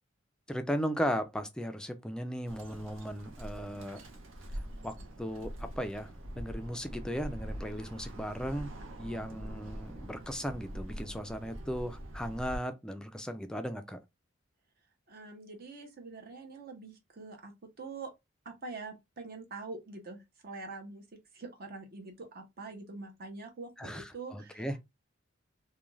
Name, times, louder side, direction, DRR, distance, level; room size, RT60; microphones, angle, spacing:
voice 1, 0.5-4.0 4.8-8.7 9.0-14.0 23.8-24.8, equal, 5° left, 0.3 m, -36 dB
Bird, 2.5-12.6, equal, 90° right, 0.7 m, -44 dB
voice 2, 15.1-17.5 17.8-18.1 18.4-21.0 21.3-24.7, right 3 dB, 50° right, 0.7 m, -44 dB
2.4 x 2.2 x 3.1 m
head